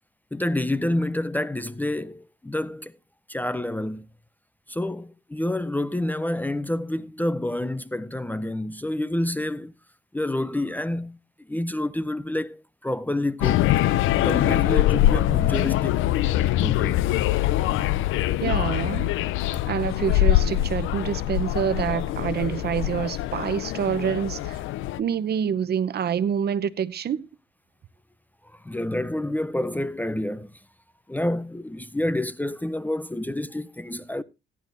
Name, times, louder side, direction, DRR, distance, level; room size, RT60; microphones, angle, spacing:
voice 1, 0.3-2.9 3.3-4.1 4.7-9.7 10.1-11.2 11.5-13.8 14.1-16.0 16.6-17.0 28.5-30.5 31.1-34.2, left 1 dB, 10° left, 0.5 m, -28 dB
sound 1, 13.4-25.0, left 14 dB, 85° left, 0.5 m, -23 dB
voice 2, 18.4-19.1 19.7-24.6 25.0-27.3, right 8 dB, 55° right, 0.7 m, -27 dB
17.0 x 11.0 x 2.6 m
cardioid pair, 90°, 20 cm